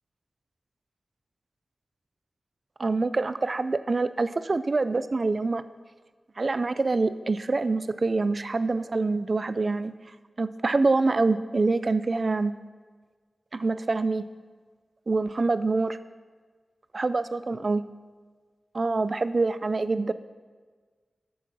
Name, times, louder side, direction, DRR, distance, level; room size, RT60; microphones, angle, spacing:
voice 1, 2.8-5.6 6.4-9.9 10.4-12.5 13.5-14.3 15.1-16.0 16.9-17.8 18.7-20.1, right 3 dB, 50° right, 14 dB, 0.3 m, -25 dB
7.1 x 7.1 x 5.9 m, 1.5 s
wide cardioid pair, 85°, 0 cm